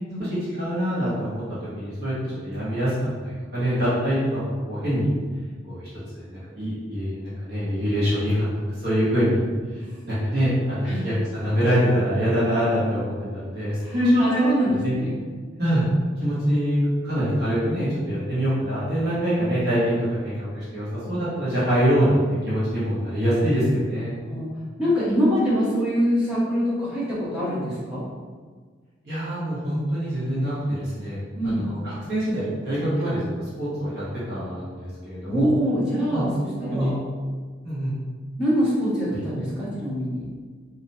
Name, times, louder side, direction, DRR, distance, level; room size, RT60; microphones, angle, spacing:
voice 1, 0.2-1.4 1.8-3.0 3.2-5.1 5.7-5.8 6.1-8.5 8.8-9.4 9.7-14.5 14.8-14.9 15.6-15.8 16.2-16.8 17.0-24.1 29.0-33.3 33.6-35.5 36.1-36.9 37.6-37.9, equal, 55° right, -11 dB, 1.3 m, -24 dB
voice 2, 13.8-15.1 24.2-24.5 24.8-28.1 31.3-31.7 35.3-37.0 38.4-40.3, equal, 5° right, -10 dB, 1.0 m, -25 dB
3.2 x 2.9 x 2.7 m, 1.5 s
head